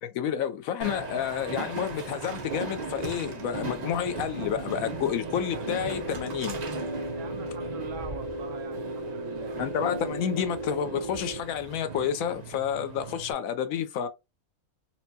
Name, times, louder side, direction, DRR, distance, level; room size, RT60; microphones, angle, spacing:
voice 1, 0.0-6.6 9.6-14.1, left 9 dB, 75° left, 1.0 m, -30 dB
Train, 0.8-13.3, right 3 dB, 45° right, 0.5 m, -38 dB
sound 1, 4.8-11.4, right 1 dB, 30° right, 1.1 m, -36 dB
voice 2, 6.9-9.6, right 8 dB, 70° right, 0.9 m, -44 dB
4.3 x 2.1 x 2.7 m
omnidirectional pair, 1.5 m